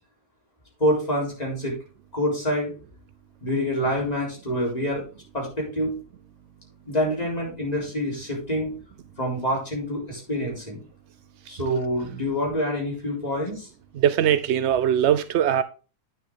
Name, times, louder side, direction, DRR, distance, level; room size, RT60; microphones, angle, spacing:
voice 1, 0.8-1.8 2.1-2.7 3.4-5.0 5.3-6.0 6.9-8.7 9.2-10.8 11.5-13.7, equal, 25° left, 4.1 m, -26 dB
voice 2, 14.0-15.6, right 10 dB, 75° right, 0.6 m, -21 dB
9.1 x 6.9 x 3.7 m
omnidirectional pair, 1.7 m